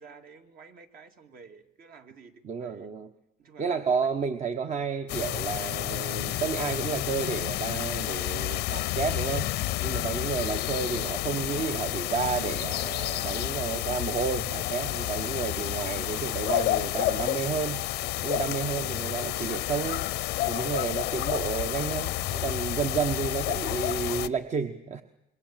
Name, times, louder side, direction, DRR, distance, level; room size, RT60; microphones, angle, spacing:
voice 1, 0.0-2.9 3.4-4.1 4.4-4.5 21.3-21.6, right 5 dB, 60° right, 5 dB, 2.4 m, -51 dB
voice 2, 2.4-3.1 3.6-9.5 9.8-17.8 18.2-20.0 20.5-25.0, right 6 dB, 45° right, 8 dB, 1.2 m, -31 dB
sound 1, 5.1-24.3, left 16 dB, 85° left, 0.8 m, -30 dB
26.0 x 22.0 x 7.4 m, 0.85 s
cardioid pair, 110°, 17 cm